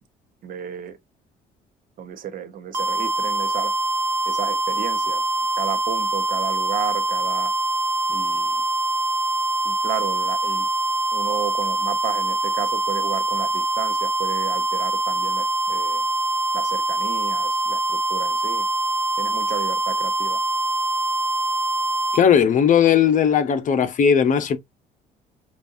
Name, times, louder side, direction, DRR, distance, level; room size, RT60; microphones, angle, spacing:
voice 1, 0.4-1.0 2.0-3.7 4.3-5.2 5.6-7.5 8.1-8.6 9.6-10.7 11.1-16.0 16.5-18.7 19.2-20.4, right 9 dB, 55° right, 0.9 m, -33 dB
sound 1, 2.7-22.2, right 2 dB, 15° right, 0.7 m, -24 dB
voice 2, 22.1-24.6, left 8 dB, 50° left, 0.8 m, -17 dB
5.2 x 2.5 x 2.7 m
cardioid pair, 110°, 17 cm